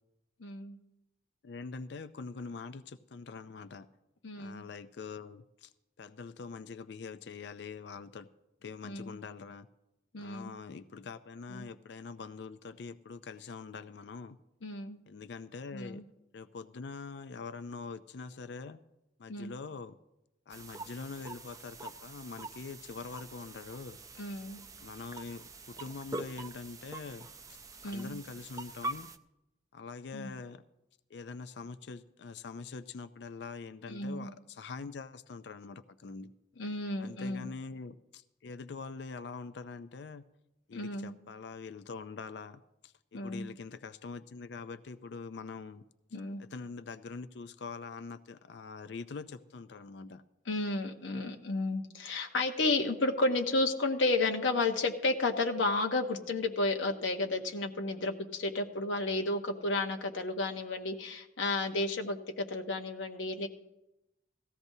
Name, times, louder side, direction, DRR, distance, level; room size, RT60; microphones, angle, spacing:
voice 1, 0.4-0.8 4.2-4.6 8.8-9.2 10.1-10.5 11.5-11.7 14.6-15.0 15.7-16.0 19.3-19.5 24.2-24.6 27.8-28.2 30.1-30.3 33.9-34.3 36.6-37.5 40.7-41.1 43.1-43.5 46.1-46.4 50.5-63.5, left 2 dB, 90° left, 4 dB, 0.9 m, -32 dB
voice 2, 1.4-3.9 4.4-5.7 6.0-8.3 8.6-9.7 10.2-14.4 15.1-16.0 16.3-18.8 19.2-20.0 20.5-24.0 24.8-27.6 27.8-29.1 29.7-30.6 31.1-36.3 37.0-40.2 40.7-45.8 46.4-50.2, left 4 dB, 65° left, 11 dB, 0.4 m, -44 dB
sound 1, 20.5-29.2, right 2 dB, 20° right, 0.4 m, -44 dB
18.0 x 14.5 x 2.7 m, 0.92 s
head